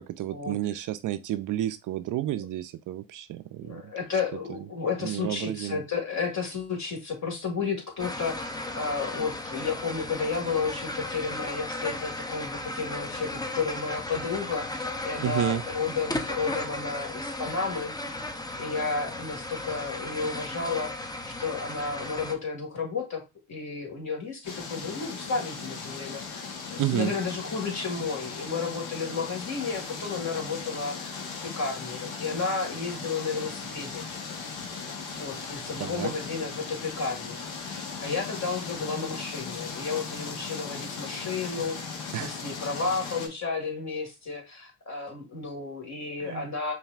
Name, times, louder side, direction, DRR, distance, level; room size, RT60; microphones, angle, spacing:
voice 1, 0.0-4.2 4.5-4.7 5.0-5.8 15.2-15.6 26.8-27.1 35.8-36.1 42.1-42.3 46.2-46.5, right 13 dB, 50° right, 0.4 m, -31 dB
voice 2, 3.6-18.0 18.6-21.1 21.4-23.2 23.5-26.4 26.7-31.2 31.6-34.0 35.2-41.8 42.2-46.7, left 4 dB, 45° left, 1.9 m, -32 dB
sound 1, 8.0-22.3, left 2 dB, 10° left, 0.6 m, -35 dB
sound 2, 24.4-43.3, left 5 dB, 65° left, 1.1 m, -38 dB
5.4 x 2.7 x 2.4 m
supercardioid pair, 60°, 40 cm